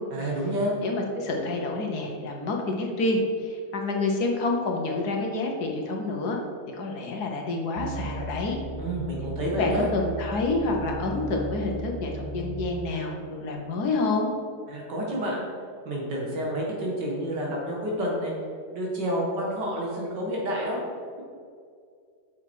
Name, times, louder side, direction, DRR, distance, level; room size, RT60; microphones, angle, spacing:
voice 1, 0.1-0.7 8.8-9.9 14.7-15.4 15.9-18.3 18.7-20.8, equal, 90° right, -3 dB, 2.3 m, -29 dB
voice 2, 0.8-6.4 6.7-8.6 9.5-14.3, left 2 dB, 70° left, 1 dB, 1.5 m, -28 dB
sound 1, 7.8-12.9 13.5-13.6, right 1 dB, 70° right, 1.5 m, -36 dB
6.6 x 6.1 x 4.6 m, 2.3 s
omnidirectional pair, 1.8 m